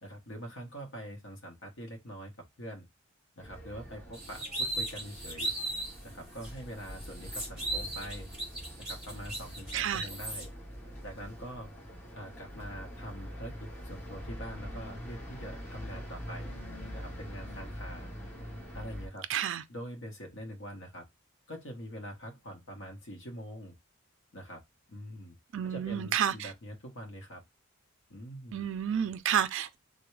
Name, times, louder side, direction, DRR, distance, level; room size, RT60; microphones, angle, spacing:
voice 1, 0.0-2.3 2.6-2.9 3.4-5.5 6.0-8.3 8.8-10.5 11.0-11.7 12.2-16.5 16.9-18.1 18.7-19.3 19.7-21.1 21.5-23.7 24.3-24.6 24.9-25.3 25.6-27.4 28.1-28.6, equal, 55° left, 0.9 m, -44 dB
sound 1, 3.4-19.1, equal, 30° left, 1.4 m, -44 dB
sound 2, 4.1-6.0 6.4-6.5 6.9-10.4, right 2 dB, 5° right, 1.2 m, -37 dB
voice 2, 9.7-10.1 19.3-19.6 25.5-26.5 28.5-29.8, right 9 dB, 55° right, 0.4 m, -30 dB
3.4 x 2.1 x 3.1 m
head